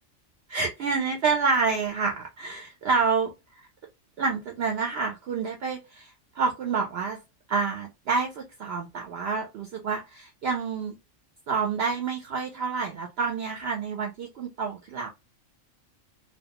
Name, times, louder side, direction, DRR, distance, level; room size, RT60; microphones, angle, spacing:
voice 1, 0.5-3.3 4.2-7.2 7.5-11.0 11.5-15.1, right 5 dB, 65° right, 0.7 m, -28 dB
2.3 x 2.2 x 2.7 m
omnidirectional pair, 1.3 m